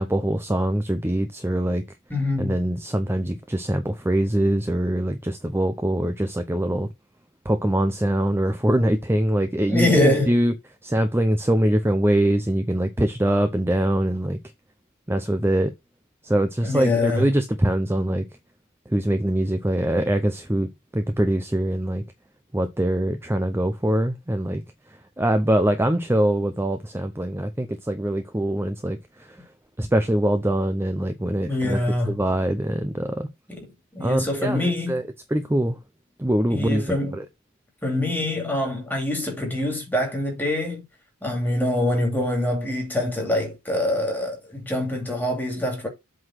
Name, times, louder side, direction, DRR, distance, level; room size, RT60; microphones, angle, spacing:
voice 1, 0.0-1.8 2.4-6.9 7.4-10.5 10.8-14.4 15.1-15.7 16.2-18.2 18.9-22.0 22.5-24.6 24.9-29.5 29.8-31.8 32.1-33.3 34.0-35.0 35.3-35.8 36.2-36.8 37.1-37.3, right 1 dB, 10° right, 0.6 m, -23 dB
voice 2, 2.1-2.6 9.7-10.3 16.6-17.3 31.5-32.2 33.5-33.6 33.9-34.9 36.5-37.1 37.8-40.8 41.2-45.9, left 1 dB, 10° left, 2.6 m, -24 dB
7.9 x 3.9 x 5.9 m
head